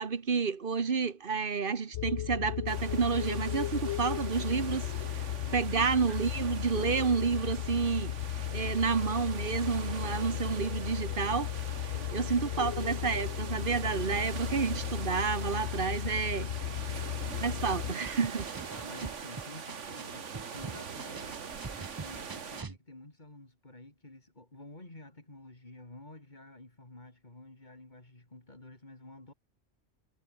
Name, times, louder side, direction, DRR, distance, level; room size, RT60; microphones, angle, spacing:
voice 1, 0.0-4.9 5.5-8.1 8.5-11.5 12.1-16.5 17.4-18.5, right 5 dB, 45° right, 1.3 m, -30 dB
sound 1, 1.9-17.9, left 13 dB, 80° left, 0.9 m, -35 dB
sound 2, 2.7-22.6, right 6 dB, 75° right, 1.8 m, -43 dB
voice 2, 5.0-6.1 11.8-12.9 18.7-21.4 21.7-29.3, left 2 dB, 35° left, 3.7 m, -51 dB
sound 3, 18.0-20.0 20.3-22.8, right 4 dB, 30° right, 0.4 m, -43 dB
omnidirectional pair, 1.3 m